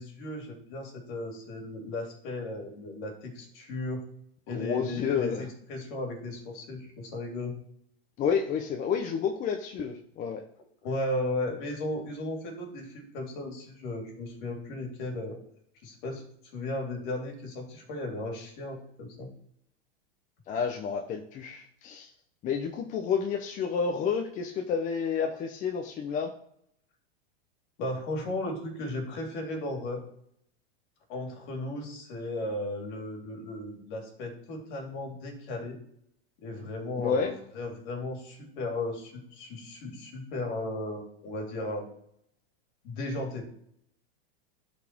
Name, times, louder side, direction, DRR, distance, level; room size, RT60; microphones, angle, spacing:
voice 1, 0.0-4.0 4.5-7.5 10.8-15.4 15.8-16.2 16.5-19.3 27.8-30.0 31.1-35.8 36.4-41.9 42.8-43.5, left 1 dB, 50° left, 3 dB, 2.7 m, -35 dB
voice 2, 4.5-5.5 8.2-10.4 20.5-22.1 22.4-26.3 37.0-37.3, left 6 dB, 25° left, 4 dB, 0.7 m, -30 dB
11.5 x 4.3 x 4.5 m, 0.70 s
supercardioid pair, 140°, 31 cm